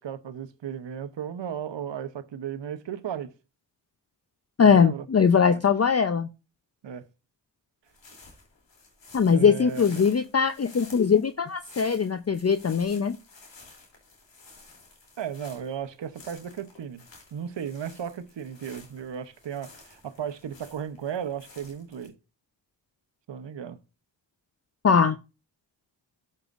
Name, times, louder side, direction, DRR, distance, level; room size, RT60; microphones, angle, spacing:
voice 1, 0.0-3.3 4.6-5.1 5.5-5.6 6.8-7.1 9.3-10.1 15.2-17.1 17.3-22.1 23.3-23.8, right 8 dB, 70° right, 0.9 m, -35 dB
voice 2, 4.6-6.3 9.1-13.2 24.8-25.1, left 6 dB, 35° left, 0.7 m, -21 dB
sound 1, 7.9-22.1, left 3 dB, 80° left, 3.2 m, -52 dB
12.0 x 6.5 x 2.5 m
cardioid pair, 40°, 44 cm